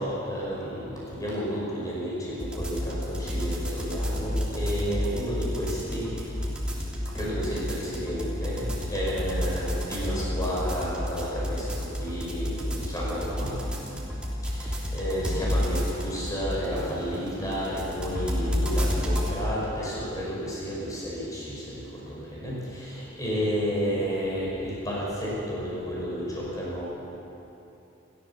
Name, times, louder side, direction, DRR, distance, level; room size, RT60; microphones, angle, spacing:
voice 1, 0.0-6.1 7.1-8.6 8.9-13.5 14.5-21.6 21.9-26.9, equal, 15° left, -6 dB, 5.6 m, -31 dB
sound 1, 2.4-19.4, equal, 5° right, 3.3 m, -30 dB
29.5 x 14.5 x 7.2 m, 2.9 s
head